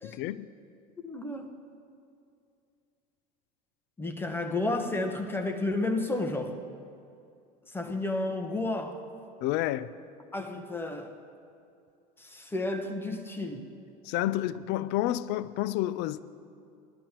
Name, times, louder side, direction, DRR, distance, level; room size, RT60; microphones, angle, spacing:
voice 1, 0.0-0.5 9.4-9.9 14.1-16.2, left 14 dB, 60° left, 0.5 m, -30 dB
voice 2, 1.0-1.5 4.0-6.6 7.7-9.0 10.3-11.1 12.2-13.7, left 2 dB, 10° left, 1.3 m, -32 dB
19.5 x 12.0 x 3.0 m
supercardioid pair, 105°, 20 cm